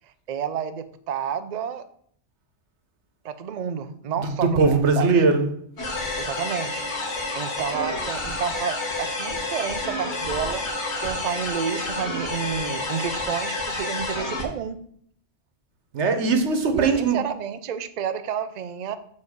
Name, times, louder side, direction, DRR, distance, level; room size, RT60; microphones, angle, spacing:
voice 1, 0.3-1.9 3.2-5.1 6.2-6.8 7.3-10.7 11.0-14.8 16.7-19.0, right 8 dB, 50° right, 10 dB, 0.6 m, -30 dB
voice 2, 4.2-5.5 15.9-17.2, right 4 dB, 90° right, 7 dB, 1.3 m, -20 dB
sound 1, 5.8-14.4, left 2 dB, 80° left, 1.8 m, -29 dB
7.2 x 4.2 x 6.3 m, 0.64 s
omnidirectional pair, 1.2 m